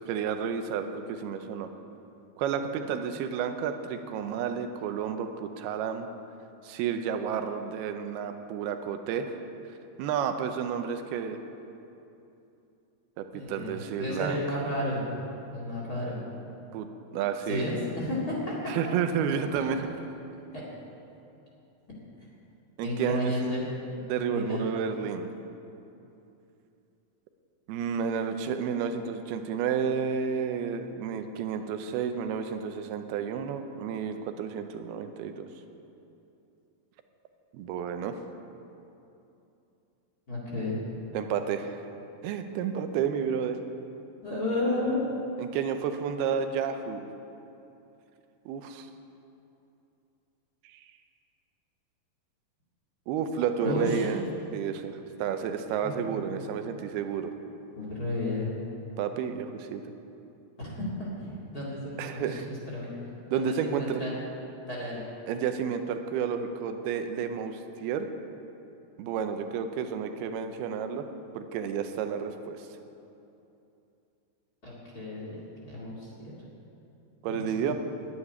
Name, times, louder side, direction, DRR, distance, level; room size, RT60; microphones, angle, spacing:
voice 1, 0.1-1.7 2.4-6.1 6.6-9.3 10.0-11.4 13.2-14.6 16.7-17.7 18.7-19.8 22.8-23.5 24.0-25.3 27.7-35.5 37.5-38.1 41.1-41.8 42.2-43.6 45.4-47.0 48.5-48.9 50.7-50.8 53.1-54.2 54.5-57.3 59.0-59.9 62.0-62.5 63.3-64.0 65.3-68.1 69.0-71.1 71.4-72.6 77.2-77.7, right 7 dB, 90° right, 7 dB, 2.7 m, -31 dB
voice 2, 13.3-15.1 15.5-16.2 17.5-18.5 18.9-19.0 22.8-23.7 24.3-24.7 40.3-40.8 44.2-45.1 53.6-54.1 55.8-56.1 57.8-58.6 60.6-62.9 63.3-64.1 64.6-65.0 74.6-75.4 75.6-76.3 77.3-77.7, left 1 dB, 30° left, -5 dB, 2.1 m, -32 dB
9.7 x 9.5 x 9.9 m, 2.8 s
omnidirectional pair, 4.5 m